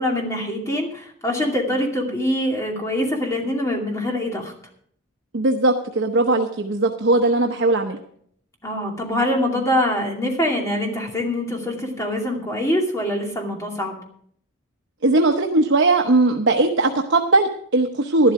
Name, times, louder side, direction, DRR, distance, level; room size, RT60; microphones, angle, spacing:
voice 1, 0.0-4.5 8.6-14.0, left 1 dB, 15° left, 0 dB, 2.5 m, -24 dB
voice 2, 5.3-8.0 15.0-18.3, right 2 dB, 70° right, 3 dB, 0.9 m, -19 dB
12.0 x 12.0 x 4.8 m, 0.63 s
head